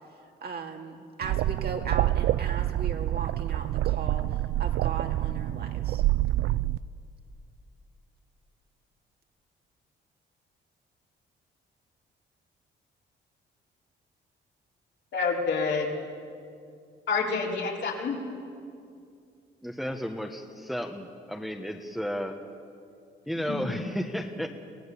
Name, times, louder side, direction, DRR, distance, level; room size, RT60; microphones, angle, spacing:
voice 1, 0.4-4.2 4.6-6.0, right 5 dB, 55° right, 3 dB, 2.4 m, -37 dB
sound 1, 1.2-6.8, right 15 dB, 75° right, 0.4 m, -27 dB
voice 2, 15.1-15.9 17.1-18.2 23.4-23.8, left 4 dB, 65° left, -2 dB, 4.1 m, -28 dB
voice 3, 19.6-22.4 23.3-24.5, equal, ahead, 3 dB, 1.3 m, -33 dB
24.0 x 17.0 x 7.1 m, 2.4 s
cardioid pair, 90°, 20 cm